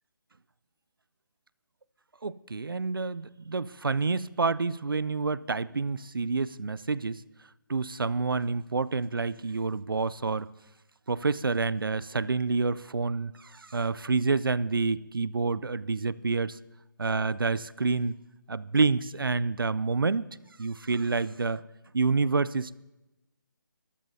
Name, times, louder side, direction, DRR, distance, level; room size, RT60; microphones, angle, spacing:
voice 1, 2.2-7.2 7.7-10.5 11.1-16.6 17.0-18.1 18.5-20.3 20.6-21.6 21.9-22.8, right 4 dB, 85° right, 19 dB, 0.5 m, -28 dB
23.5 x 14.0 x 2.7 m, 0.98 s
figure-of-eight pair, 150°, 11 cm